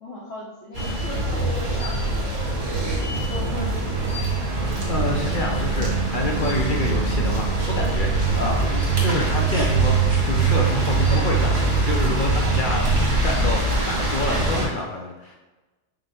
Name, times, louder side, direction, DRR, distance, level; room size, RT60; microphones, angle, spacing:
voice 1, 0.0-2.5 3.0-4.0, left 1 dB, 90° left, -5 dB, 1.2 m, -36 dB
sound 1, 0.7-14.7, right 3 dB, 85° right, 1.5 m, -22 dB
voice 2, 4.9-15.4, left 2 dB, 55° left, -1 dB, 0.6 m, -28 dB
5.0 x 2.1 x 4.1 m, 1.1 s
omnidirectional pair, 1.3 m